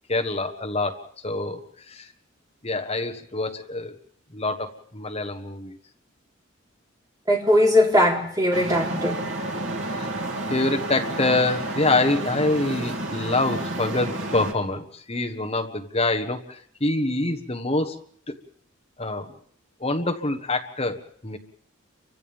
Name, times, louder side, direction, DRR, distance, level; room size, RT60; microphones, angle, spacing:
voice 1, 0.1-1.6 1.9-2.1 2.6-4.0 4.3-5.8 9.9-10.1 10.5-18.0 18.3-18.4 19.0-19.3 19.8-21.4, left 2 dB, 30° left, 1.5 m, -26 dB
voice 2, 7.3-9.3, left 1 dB, 20° right, 3.7 m, -20 dB
Traffic noise roadway noise, 8.5-14.5, right 2 dB, 80° right, 2.7 m, -30 dB
30.0 x 24.5 x 3.6 m
head